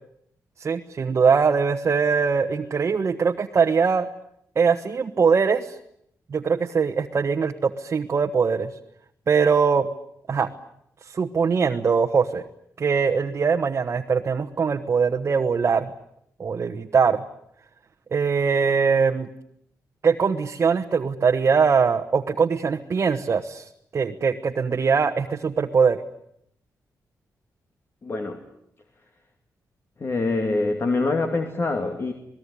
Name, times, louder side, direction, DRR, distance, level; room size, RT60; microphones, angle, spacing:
voice 1, 0.6-4.1 4.5-5.8 6.3-8.7 9.3-9.9 10.3-10.5 11.0-12.4 12.8-15.9 16.4-17.2 18.1-19.3 20.0-26.0, right 5 dB, 45° right, 5 dB, 1.3 m, -22 dB
voice 2, 28.0-28.4 30.0-32.1, left 3 dB, 40° left, 5 dB, 2.5 m, -25 dB
27.0 x 19.5 x 9.9 m, 0.73 s
wide cardioid pair, 115°, 6 cm